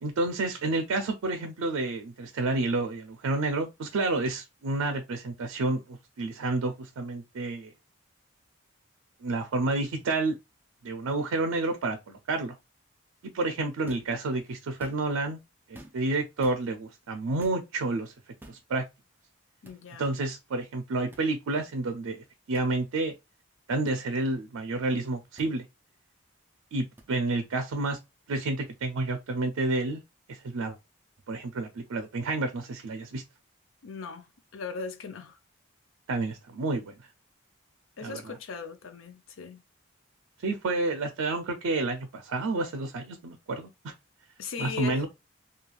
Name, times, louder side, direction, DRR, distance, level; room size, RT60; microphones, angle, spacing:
voice 1, 0.0-7.7 9.2-10.4 10.8-12.6 13.3-15.4 15.7-18.1 18.5-18.8 20.0-23.1 23.7-25.7 26.7-28.0 28.3-30.0 30.3-30.8 31.3-33.2 36.1-36.9 38.0-38.2 40.4-43.9 44.6-45.1, right 2 dB, 85° right, 0.4 m, -30 dB
sound 1, 13.8-14.2 14.7-15.2 15.7-16.1 16.4-16.6 17.4-17.6 18.4-18.6 19.6-19.8 21.1-21.3 22.5-22.7 23.9-24.0 25.4-25.5 27.0-27.1, right 1 dB, 10° right, 0.3 m, -49 dB
voice 2, 19.6-20.1 33.8-35.4 38.0-39.6 44.4-45.1, left 5 dB, 75° left, 0.5 m, -39 dB
3.1 x 2.3 x 2.3 m
head